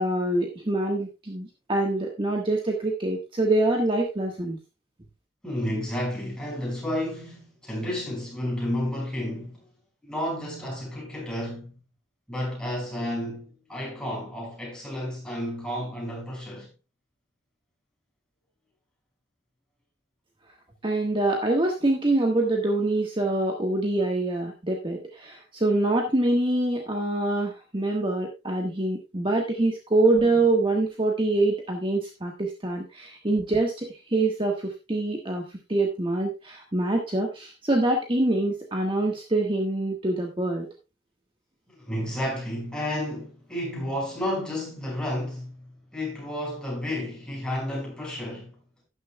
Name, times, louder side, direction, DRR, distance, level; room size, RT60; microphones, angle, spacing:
voice 1, 0.0-4.6 20.8-40.7, right 2 dB, 25° right, 1.4 m, -25 dB
voice 2, 5.4-9.7 10.0-11.8 12.3-16.7 29.4-29.5 41.7-45.6 45.9-48.6, left 1 dB, 5° left, 5.5 m, -31 dB
12.0 x 10.5 x 2.2 m
head